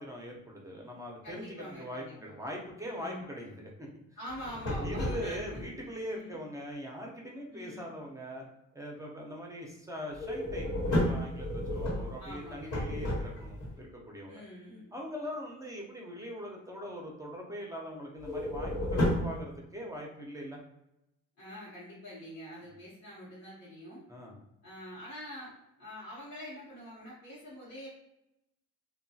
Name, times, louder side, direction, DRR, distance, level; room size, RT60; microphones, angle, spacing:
voice 1, 0.0-3.9 4.8-8.4 8.7-14.4 14.9-20.6 24.1-24.4, equal, 10° right, -1 dB, 0.6 m, -42 dB
voice 2, 1.2-2.3 2.9-3.3 4.2-6.4 7.5-7.9 12.2-13.1 14.3-14.9 21.4-24.0 24.6-25.5 25.8-27.9, equal, 65° left, -8 dB, 1.0 m, -45 dB
sound 1, 4.3-5.6 10.1-13.7 18.2-19.4, left 1 dB, 85° left, 1.2 m, -32 dB
2.8 x 2.2 x 2.7 m, 0.86 s
cardioid pair, 90°, 30 cm